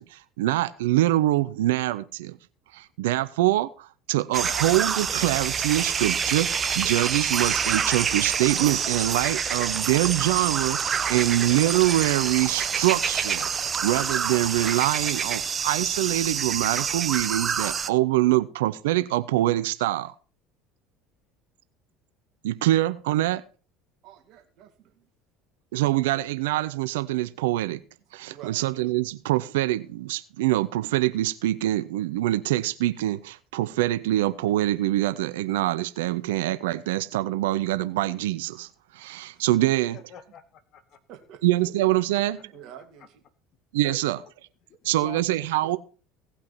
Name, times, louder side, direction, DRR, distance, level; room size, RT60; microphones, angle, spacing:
voice 1, 0.0-2.4 2.7-20.1 22.4-23.4 25.7-27.8 28.1-38.7 38.9-40.0 41.4-42.4 43.7-44.2 44.8-45.8, right 15 dB, 75° right, 0.5 m, -24 dB
sound 1, 4.3-17.9, right 6 dB, 35° right, 0.9 m, -27 dB
voice 2, 24.0-25.0 28.3-28.6 39.3-39.7 41.1-41.4 42.4-43.2, right 9 dB, 55° right, 2.4 m, -48 dB
voice 3, 39.9-41.0 41.6-41.7 42.4-42.5 43.0-43.1 43.8-44.3 44.7-45.8, left 7 dB, 50° left, 2.0 m, -45 dB
17.5 x 5.8 x 5.8 m
hypercardioid pair, 70°, 0 cm